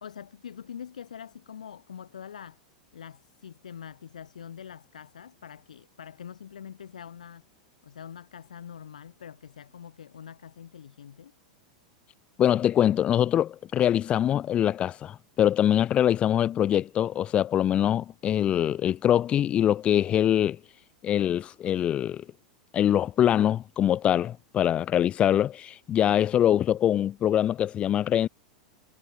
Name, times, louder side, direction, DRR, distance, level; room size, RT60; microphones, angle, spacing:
voice 1, 0.0-2.6 2.9-7.5 7.8-11.3, left 8 dB, 70° left, 1.5 m, -44 dB
voice 2, 12.4-20.6 21.0-22.2 22.7-28.3, left 10 dB, 30° left, 0.4 m, -23 dB
figure-of-eight pair, 90°, 4 cm